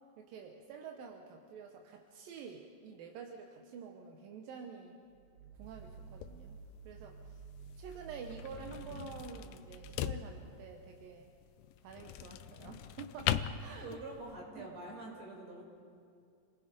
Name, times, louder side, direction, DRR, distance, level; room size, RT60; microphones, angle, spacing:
voice 1, 0.2-5.0 5.6-6.6 6.8-7.4 7.8-11.3 11.8-14.0 14.6-14.7, right 5 dB, 85° right, 3 dB, 2.8 m, -48 dB
sound 1, 5.1-10.5, right 5 dB, 70° right, 2.3 m, -52 dB
sound 2, 5.6-14.4, left 11 dB, 85° left, 2.3 m, -41 dB
voice 2, 13.8-15.6, right 2 dB, 50° right, -2 dB, 5.9 m, -46 dB
28.5 x 19.5 x 5.2 m, 2.4 s
omnidirectional pair, 3.9 m